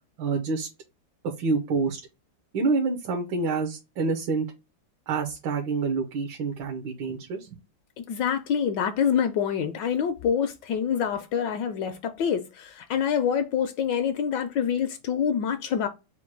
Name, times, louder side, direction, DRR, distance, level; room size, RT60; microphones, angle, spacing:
voice 1, 0.2-0.7 1.4-2.0 2.5-4.5 5.1-7.5, right 4 dB, 75° right, 1.5 m, -27 dB
voice 2, 8.0-15.9, left 8 dB, 75° left, 1.1 m, -26 dB
4.4 x 2.2 x 4.4 m
omnidirectional pair, 2.1 m